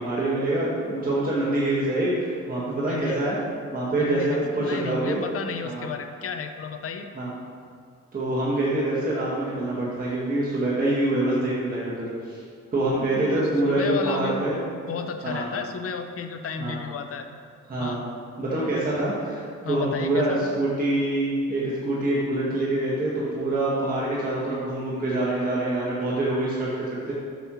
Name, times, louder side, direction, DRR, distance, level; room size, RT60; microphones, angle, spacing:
voice 1, 0.0-3.4 3.7-5.2 5.6-5.9 7.1-7.3 8.1-12.4 12.7-14.6 15.2-15.5 16.6-16.8 17.7-18.0 18.4-27.1, right 1 dB, 30° right, -8 dB, 1.7 m, -25 dB
voice 2, 2.9-3.2 3.9-7.1 13.1-14.5 14.9-17.3 17.8-18.0 19.6-20.5, left 6 dB, 50° left, 7 dB, 0.7 m, -33 dB
7.9 x 6.3 x 3.1 m, 2.2 s
cardioid pair, 90°, 30 cm